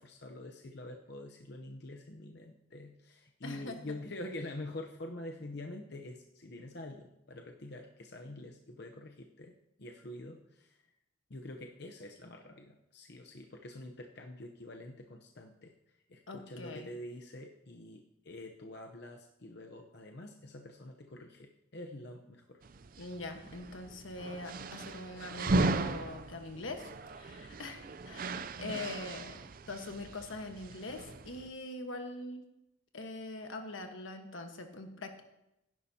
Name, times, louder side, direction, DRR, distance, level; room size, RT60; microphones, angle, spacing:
voice 1, 0.0-9.5 9.8-10.8 11.3-15.7 16.1-22.6, left 1 dB, 55° left, 2 dB, 0.8 m, -46 dB
voice 2, 3.4-4.0 16.3-16.9 23.0-32.4 32.9-35.2, left 2 dB, 80° left, 5 dB, 1.3 m, -43 dB
sound 1, 22.6-31.5, right 2 dB, 45° right, 0.5 m, -37 dB
16.0 x 11.0 x 2.8 m, 0.87 s
head